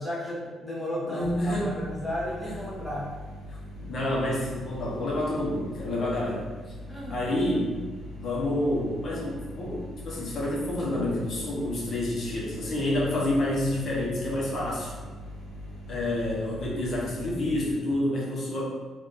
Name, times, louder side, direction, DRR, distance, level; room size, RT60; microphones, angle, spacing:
voice 1, 0.0-3.2 6.9-7.3, left 1 dB, 5° left, -6 dB, 1.0 m, -34 dB
voice 2, 1.1-1.7 2.4-2.5 3.5-6.4 7.1-7.7 8.2-14.9 15.9-18.7, left 1 dB, 60° left, -5 dB, 0.9 m, -28 dB
sound 1, 1.2-17.7, left 1 dB, 90° left, 0.9 m, -42 dB
2.7 x 2.5 x 3.7 m, 1.3 s
cardioid pair, 90°, 0 cm